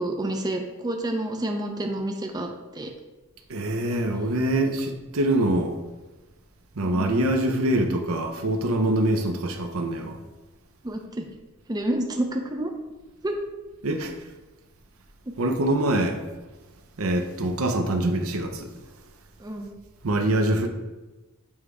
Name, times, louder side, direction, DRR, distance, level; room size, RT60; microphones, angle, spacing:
voice 1, 0.0-2.9 6.8-7.1 10.8-11.3 11.7-12.7 13.2-13.4 19.4-19.7, right 1 dB, 20° right, 3 dB, 0.5 m, -29 dB
voice 2, 3.5-5.8 6.8-10.2 13.8-14.1 15.4-16.2 17.0-18.7 20.0-20.7, right 1 dB, 75° right, 5 dB, 0.7 m, -24 dB
7.3 x 3.3 x 4.8 m, 1.1 s
head